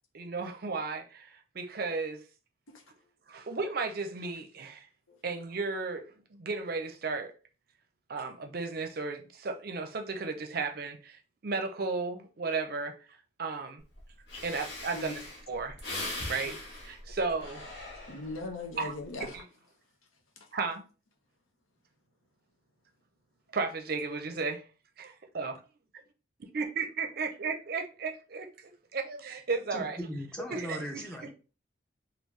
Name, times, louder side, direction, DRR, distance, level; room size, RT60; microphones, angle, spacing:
voice 1, 0.1-2.2 3.3-4.9 5.2-7.3 8.1-13.0 13.4-13.8 14.4-15.2 15.5-15.8 16.3-16.6 16.8-17.6 18.8-18.9 19.3-19.4 20.5-20.8 23.5-24.6 25.0-25.6 26.5-28.5 28.9-30.0 30.5-31.3, right 4 dB, 50° right, 0.5 m, -34 dB
Breathing, 13.9-14.0 14.3-18.5 19.0-19.4, left 2 dB, 55° left, 1.2 m, -40 dB
voice 2, 18.1-19.4, left 2 dB, 90° left, 0.8 m, -39 dB
voice 3, 29.7-31.3, equal, 5° left, 0.5 m, -38 dB
3.5 x 2.4 x 3.1 m
head